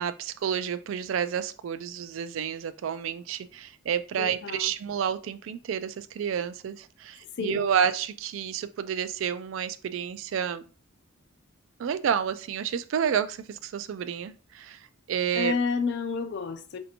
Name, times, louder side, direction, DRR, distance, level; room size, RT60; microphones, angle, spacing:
voice 1, 0.0-10.6 11.8-14.8 15.1-15.5, right 8 dB, 65° right, 0.3 m, -30 dB
voice 2, 4.2-4.7 7.4-7.7 15.3-16.8, left 5 dB, 55° left, 0.4 m, -30 dB
4.2 x 2.7 x 2.8 m
head